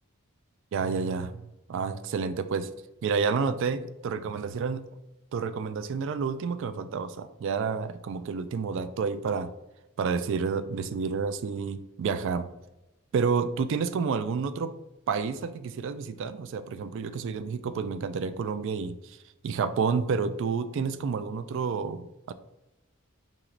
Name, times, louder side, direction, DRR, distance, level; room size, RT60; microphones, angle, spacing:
voice 1, 0.7-1.4 1.7-2.7 3.0-4.8 5.3-9.5 10.0-12.5 13.1-14.7 15.1-19.2 19.4-22.3, right 5 dB, 55° right, 12 dB, 0.3 m, -29 dB
4.5 x 3.0 x 3.7 m, 0.95 s
head